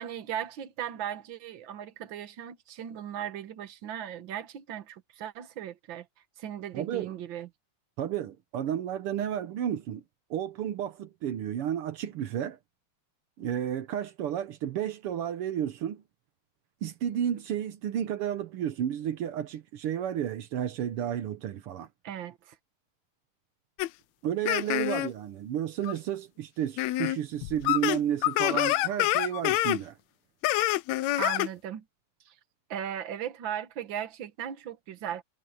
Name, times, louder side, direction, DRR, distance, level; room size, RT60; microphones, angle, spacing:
voice 1, 0.0-6.1 6.4-7.5 22.0-22.6 31.2-31.8 32.2-32.3 32.7-35.2, right 10 dB, 60° right, 1.3 m, -37 dB
voice 2, 6.7-7.1 8.0-10.0 10.3-12.6 13.4-16.0 16.8-21.9 24.2-30.0, right 10 dB, 90° right, 1.2 m, -32 dB
sound 1, 23.8-23.9 24.5-25.1 25.8-25.9 26.8-27.2 27.4-29.8 30.4-31.5, left 16 dB, 85° left, 1.6 m, -26 dB
omnidirectional pair, 3.9 m